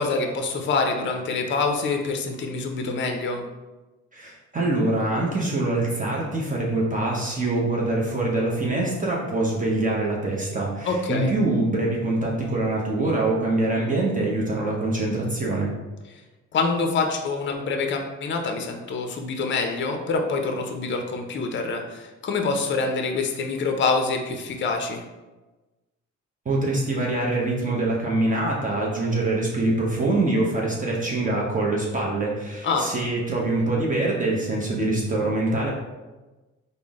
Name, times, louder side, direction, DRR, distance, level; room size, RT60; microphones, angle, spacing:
voice 1, 0.0-3.4 10.8-11.3 16.5-25.0 32.6-32.9, left 4 dB, 40° left, 4 dB, 0.5 m, -26 dB
voice 2, 4.1-15.7 26.5-35.7, right 2 dB, 25° right, -3 dB, 0.7 m, -24 dB
3.6 x 2.1 x 3.5 m, 1.2 s
cardioid pair, 90°, 30 cm